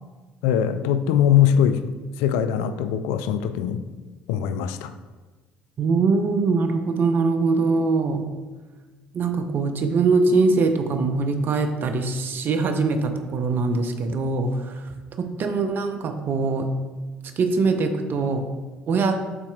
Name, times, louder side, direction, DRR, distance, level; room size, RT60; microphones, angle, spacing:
voice 1, 0.4-1.8 2.2-3.8 4.3-4.9, left 9 dB, 70° left, 11 dB, 0.4 m, -21 dB
voice 2, 5.8-8.3 9.1-14.9 15.2-16.8 17.4-18.6 18.9-19.3, right 4 dB, 50° right, 7 dB, 0.8 m, -22 dB
12.0 x 4.2 x 2.4 m, 1.3 s
hypercardioid pair, 55°, 5 cm